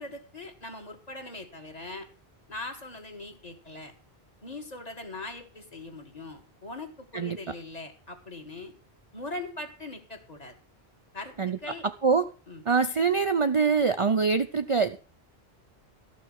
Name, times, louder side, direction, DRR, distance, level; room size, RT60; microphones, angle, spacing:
voice 1, 0.0-2.1 2.5-3.9 4.4-8.7 9.1-10.6 11.1-11.3 11.6-11.9 12.5-12.6, left 2 dB, 40° left, 4 dB, 1.8 m, -41 dB
voice 2, 7.1-7.5 11.4-12.3 12.6-15.0, right 5 dB, 40° right, 8 dB, 0.5 m, -25 dB
13.0 x 6.3 x 6.4 m, 0.37 s
omnidirectional pair, 1.1 m